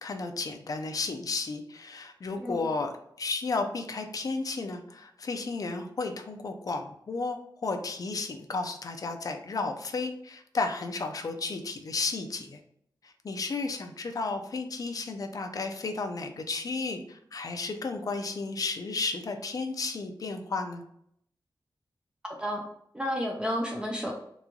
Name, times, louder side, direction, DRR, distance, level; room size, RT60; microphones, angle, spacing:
voice 1, 0.0-12.6 13.0-20.8, left 3 dB, 50° left, 5 dB, 0.4 m, -33 dB
voice 2, 22.9-24.1, equal, 10° right, 0 dB, 0.4 m, -31 dB
3.0 x 2.3 x 3.7 m, 0.69 s
wide cardioid pair, 145°, 8 cm